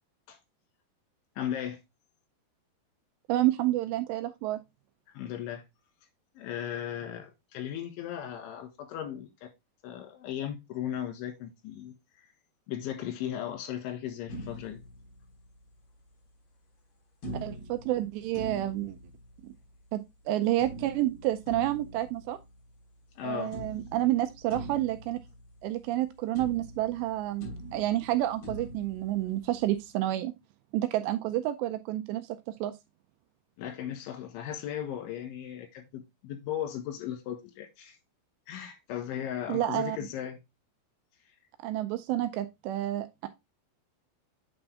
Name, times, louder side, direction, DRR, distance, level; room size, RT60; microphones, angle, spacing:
voice 1, 1.4-1.8 5.2-5.6 6.4-9.5 9.8-12.0 12.7-14.8 23.2-23.6 33.6-38.0 38.5-40.4, left 10 dB, 85° left, 3.9 m, -36 dB
voice 2, 3.3-4.6 17.4-19.0 19.4-19.5 19.9-22.4 23.2-25.2 25.6-30.3 30.7-32.7 39.5-40.0 41.6-43.3, right 14 dB, 85° right, 2.5 m, -29 dB
sound 1, 14.3-15.8 17.2-19.8 20.6-23.2 23.5-26.1 26.3-29.8, right 1 dB, 50° left, 4.5 m, -44 dB
8.8 x 4.0 x 3.3 m
omnidirectional pair, 5.3 m